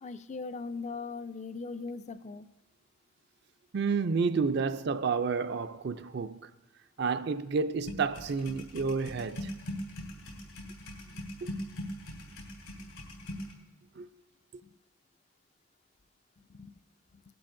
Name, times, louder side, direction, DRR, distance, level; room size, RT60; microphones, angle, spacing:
voice 1, 0.0-2.5 14.6-14.7 16.4-16.7 17.1-17.2, left 4 dB, 30° left, 0.4 m, -40 dB
voice 2, 3.7-6.5 7.0-9.5 11.4-11.5 14.0-14.1, right 5 dB, 50° right, 0.4 m, -30 dB
sound 1, 7.9-13.5, equal, 85° left, 3.3 m, -41 dB
19.5 x 11.5 x 2.6 m
head